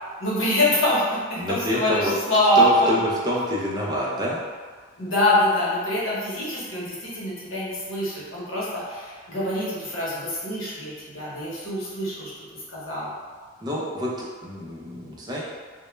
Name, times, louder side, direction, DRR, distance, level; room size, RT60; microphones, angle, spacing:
voice 1, 0.2-3.0 5.0-12.3 12.7-13.1, left 1 dB, 90° left, -7 dB, 0.8 m, -24 dB
voice 2, 1.4-2.1 2.6-4.4 13.6-15.4, left 1 dB, 20° right, -5 dB, 0.4 m, -27 dB
2.1 x 2.0 x 3.0 m, 1.5 s
head